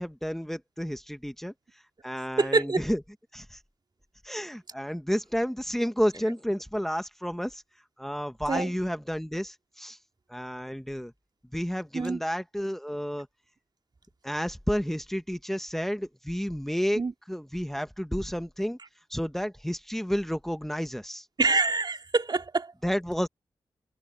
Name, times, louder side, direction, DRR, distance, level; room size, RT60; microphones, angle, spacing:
voice 1, 0.0-1.5 2.0-3.0 3.3-3.6 4.2-7.6 8.0-10.0 10.3-11.1 11.5-13.3 14.2-17.0 17.3-18.8 19.1-21.3 22.8-23.3, equal, 5° left, 1.6 m, -31 dB
voice 2, 2.4-2.8 8.5-8.7 11.9-12.2 16.9-17.1 21.4-22.7, right 3 dB, 45° right, 2.7 m, -25 dB
supercardioid pair, 40°, 10 cm